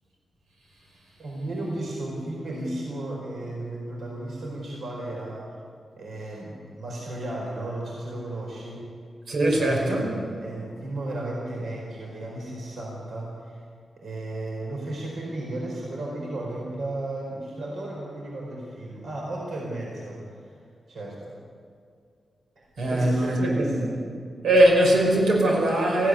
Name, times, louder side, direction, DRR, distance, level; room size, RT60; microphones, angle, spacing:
voice 1, 1.2-5.5 6.0-8.9 9.4-13.6 14.0-20.5 20.9-21.3 22.6-23.9, right 1 dB, 65° right, -2 dB, 4.5 m, -34 dB
voice 2, 9.3-10.1 22.8-23.8 24.4-26.1, right 1 dB, 85° right, -1 dB, 5.6 m, -21 dB
19.5 x 15.5 x 9.7 m, 2.2 s
wide cardioid pair, 165°, 0 cm